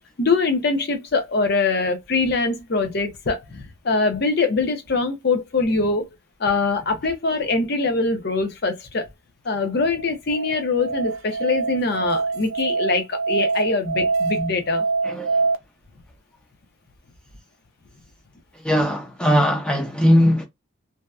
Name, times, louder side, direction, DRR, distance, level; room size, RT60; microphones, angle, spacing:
voice 1, 0.2-6.1 6.4-9.1 9.4-14.9, left 3 dB, 50° left, 0.6 m, -23 dB
Musical instrument, 9.9-15.6, right 4 dB, 80° right, 0.5 m, -25 dB
voice 2, 15.0-15.4 18.6-20.5, equal, 5° left, 0.5 m, -19 dB
2.7 x 2.2 x 2.2 m
head